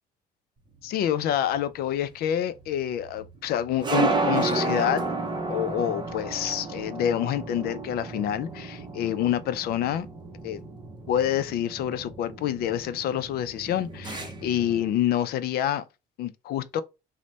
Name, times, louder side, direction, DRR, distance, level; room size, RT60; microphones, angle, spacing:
voice 1, 0.8-5.0 5.5-10.1 10.4-10.6 11.1-15.8 16.2-16.8, left 10 dB, 65° left, 0.4 m, -27 dB
sound 1, 0.8-14.9, right 3 dB, 25° right, 0.6 m, -32 dB
3.2 x 2.1 x 3.9 m
cardioid pair, 110°, 17 cm